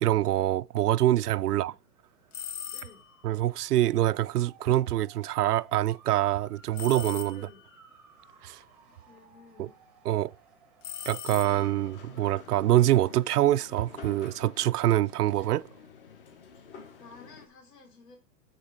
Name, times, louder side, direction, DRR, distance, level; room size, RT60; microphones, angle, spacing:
voice 1, 0.0-1.7 3.2-7.5 8.4-8.6 9.6-9.7 10.1-10.3 11.1-15.6, right 14 dB, 75° right, 0.5 m, -25 dB
voice 2, 1.5-1.8 2.7-3.0 7.3-7.6 9.1-9.7 17.0-18.2, left 4 dB, 75° left, 3.8 m, -53 dB
Motor vehicle (road) / Siren, 1.8-14.4, right 4 dB, ahead, 0.8 m, -59 dB
sound 1, 2.3-3.2 6.8-7.7 10.8-12.0, left 8 dB, 50° left, 0.5 m, -40 dB
sound 2, 11.3-17.5, left 6 dB, 35° left, 1.0 m, -49 dB
9.0 x 4.2 x 5.0 m
hypercardioid pair, 165°, 48 cm